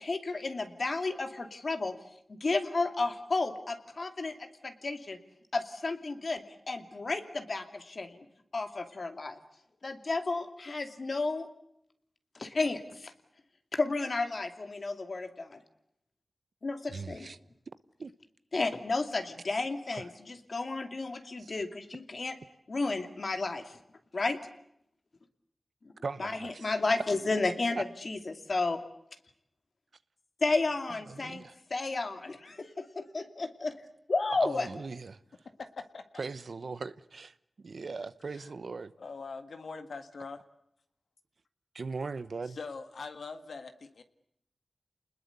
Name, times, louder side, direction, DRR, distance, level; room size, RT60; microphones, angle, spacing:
voice 1, 0.0-1.9 2.3-5.2 5.5-8.3 8.5-9.4 9.8-11.5 12.3-13.1 13.7-15.6 16.6-17.3 18.5-22.4 22.7-23.8 24.1-24.4 26.2-28.8 30.4-31.4 31.7-33.7 34.1-34.7, left 3 dB, 60° left, 2.6 m, -32 dB
voice 2, 16.9-17.4 18.0-18.1 19.9-20.0 21.4-21.5 26.0-26.7 27.8-27.9 30.9-31.5 34.4-35.2 36.2-38.9 41.7-42.6, right 4 dB, 75° right, 1.0 m, -39 dB
voice 3, 39.0-40.4 42.5-44.0, left 4 dB, 90° left, 1.8 m, -42 dB
29.0 x 20.5 x 8.2 m
wide cardioid pair, 55°, 0 cm